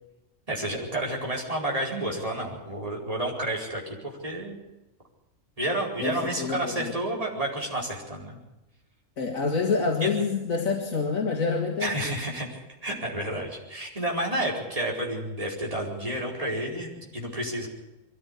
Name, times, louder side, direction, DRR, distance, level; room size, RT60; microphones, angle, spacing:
voice 1, 0.5-4.6 5.6-8.4 10.0-10.1 11.8-12.5 12.8-17.7, right 1 dB, 25° right, -2 dB, 4.8 m, -30 dB
voice 2, 6.0-6.9 9.2-12.1, left 4 dB, 90° left, 1 dB, 2.5 m, -27 dB
22.5 x 14.5 x 8.3 m, 1.0 s
omnidirectional pair, 1.4 m